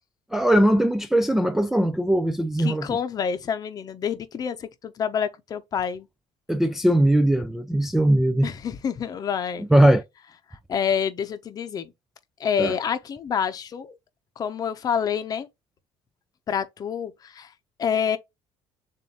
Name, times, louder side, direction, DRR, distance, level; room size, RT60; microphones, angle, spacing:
voice 1, 0.3-2.9 6.5-8.5 9.7-10.0 12.6-12.7, right 1 dB, 5° right, 0.3 m, -20 dB
voice 2, 2.6-6.1 8.4-9.6 10.7-11.9 12.4-14.0 14.4-15.5 16.5-17.5 17.8-18.2, left 7 dB, 35° left, 0.7 m, -27 dB
7.1 x 2.6 x 2.9 m
cardioid pair, 165°, 12 cm